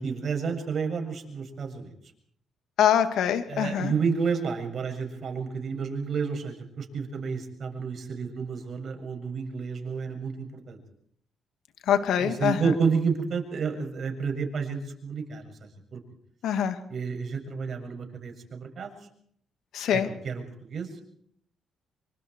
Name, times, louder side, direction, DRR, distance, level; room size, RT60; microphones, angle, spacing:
voice 1, 0.0-1.9 3.5-10.8 12.1-16.0 16.9-18.9 19.9-21.0, right 5 dB, 50° right, 3 dB, 7.4 m, -30 dB
voice 2, 2.8-3.9 11.9-12.6 16.4-16.8 19.7-20.1, left 9 dB, 75° left, 8 dB, 2.7 m, -24 dB
26.5 x 25.0 x 4.8 m, 0.65 s
cardioid pair, 90°, 0 cm